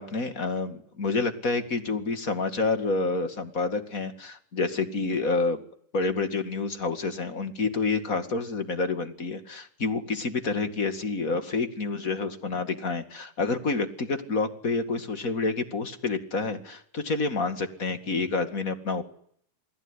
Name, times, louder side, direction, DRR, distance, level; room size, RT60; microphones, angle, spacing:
voice 1, 0.0-5.6 5.9-19.0, left 3 dB, 30° left, 9 dB, 2.2 m, -28 dB
29.0 x 20.0 x 9.9 m, 0.64 s
omnidirectional pair, 3.5 m